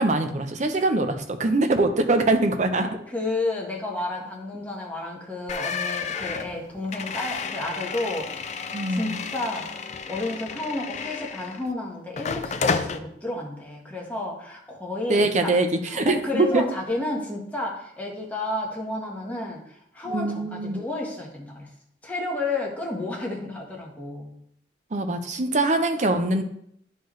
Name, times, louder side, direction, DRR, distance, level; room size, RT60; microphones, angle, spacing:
voice 1, 0.0-2.9 8.7-9.2 15.1-16.6 20.1-20.8 24.9-26.4, right 2 dB, 40° right, 7 dB, 0.7 m, -23 dB
voice 2, 3.1-15.5 15.9-21.7 22.0-24.3, left 2 dB, 10° left, -3 dB, 1.4 m, -31 dB
sound 1, 5.5-11.7 12.2-13.0, left 5 dB, 40° left, 0.4 m, -31 dB
11.0 x 4.6 x 3.2 m, 0.71 s
head